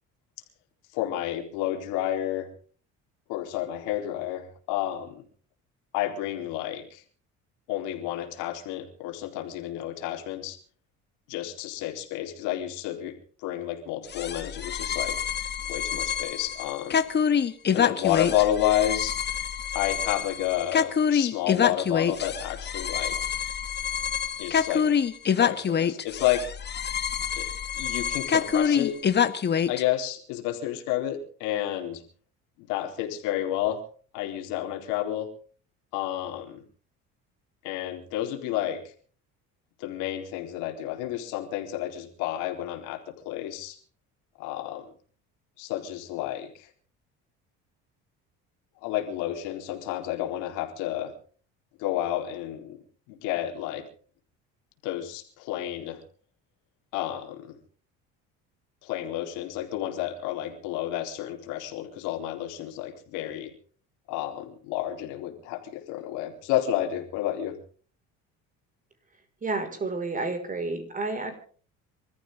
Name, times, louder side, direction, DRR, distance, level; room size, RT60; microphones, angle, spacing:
voice 1, 0.9-2.5 3.3-5.2 5.9-7.0 7.7-10.6 11.3-15.2 15.7-17.0 17.7-19.1 19.7-23.2 24.4-24.9 25.3-26.5 27.4-27.5 27.7-29.0 29.7-32.0 32.6-33.8 34.1-35.3 35.9-36.6 37.6-38.8 39.8-43.8 44.4-44.9 45.6-46.7 48.8-51.1 51.8-52.8 53.1-53.9 54.8-56.0 56.9-57.6 58.8-63.5 64.1-67.6, left 12 dB, 85° left, 3 dB, 4.2 m, -30 dB
sound 1, 14.1-29.8, left 7 dB, 35° left, 1.6 m, -26 dB
voice 2, 69.4-71.3, right 3 dB, 25° right, 7 dB, 5.6 m, -30 dB
26.5 x 14.5 x 3.8 m, 0.42 s
supercardioid pair, 100°, 30 cm